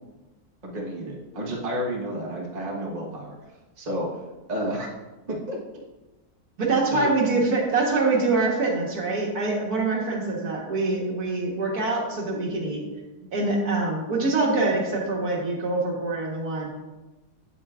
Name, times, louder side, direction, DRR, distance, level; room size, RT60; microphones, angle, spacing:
voice 1, 0.6-4.1 4.5-4.9 5.3-5.6 6.9-7.1, equal, 30° right, -3 dB, 1.2 m, -31 dB
voice 2, 6.6-12.8 13.3-16.7, right 3 dB, 70° right, -2 dB, 1.8 m, -25 dB
8.5 x 7.7 x 2.4 m, 1.1 s
omnidirectional pair, 1.7 m